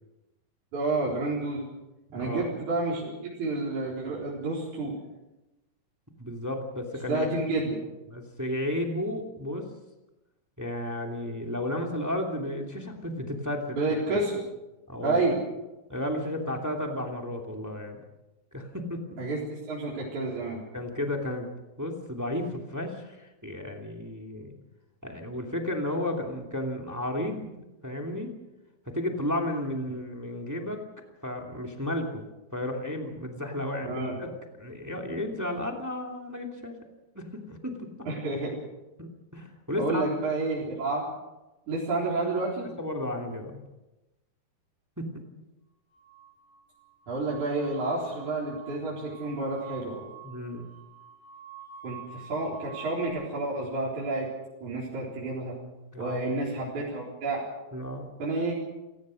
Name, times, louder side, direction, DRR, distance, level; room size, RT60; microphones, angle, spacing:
voice 1, 0.7-1.6 2.1-4.9 7.0-7.8 13.8-14.4 15.0-15.4 19.2-20.6 33.8-34.1 38.1-38.5 39.7-41.0 41.7-42.7 47.1-50.0 51.8-54.3 54.6-55.6 56.0-57.4 58.2-58.5, right 2 dB, 45° right, -5 dB, 5.2 m, -30 dB
voice 2, 2.1-2.5 6.2-7.3 8.1-9.7 10.6-13.8 14.9-15.2 15.9-18.0 18.5-19.2 20.7-21.5 21.8-24.5 25.0-27.6 27.8-28.3 28.8-30.8 31.2-34.3 34.6-36.8 37.1-37.9 39.0-40.0 42.8-43.6 45.0-45.2 50.2-50.7 55.9-56.2 57.7-58.1, left 1 dB, 5° right, 2 dB, 1.5 m, -33 dB
sound 1, 45.9-53.1, right 7 dB, 60° left, 9.9 m, -47 dB
28.0 x 16.5 x 6.4 m, 1.0 s
omnidirectional pair, 4.8 m